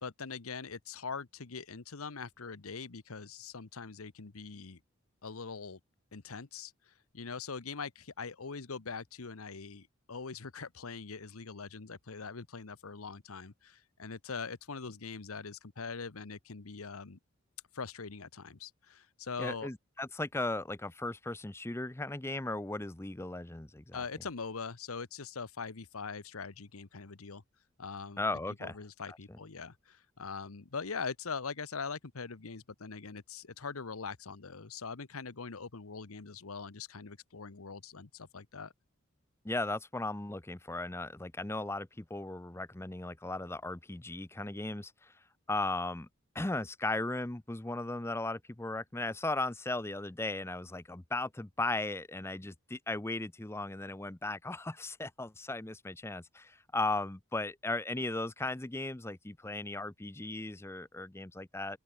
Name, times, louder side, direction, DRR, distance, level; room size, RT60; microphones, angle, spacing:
voice 1, 0.0-4.8 5.2-5.8 6.1-17.2 17.7-19.7 23.9-27.4 27.8-28.2 28.6-38.7, left 5 dB, 90° left, 1.1 m, -42 dB
voice 2, 19.4-24.0 28.2-28.8 39.4-45.1 45.5-46.1 46.3-61.8, left 2 dB, 10° left, 0.6 m, -36 dB
open air
head